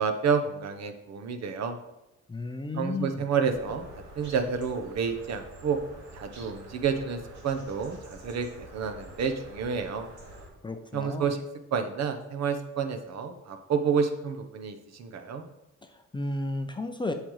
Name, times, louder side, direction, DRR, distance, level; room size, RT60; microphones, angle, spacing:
voice 1, 0.0-1.8 2.7-3.8 4.2-5.8 6.1-8.5 8.7-10.0 10.9-11.4 11.7-15.4, right 6 dB, 60° right, 6 dB, 0.9 m, -29 dB
voice 2, 2.3-3.2 10.6-11.3 15.8-17.1, left 2 dB, 15° left, 6 dB, 0.4 m, -33 dB
sound 1, 3.5-10.5, right 1 dB, 75° right, 2.4 m, -47 dB
8.3 x 6.6 x 3.1 m, 0.92 s
cardioid pair, 135°, 30 cm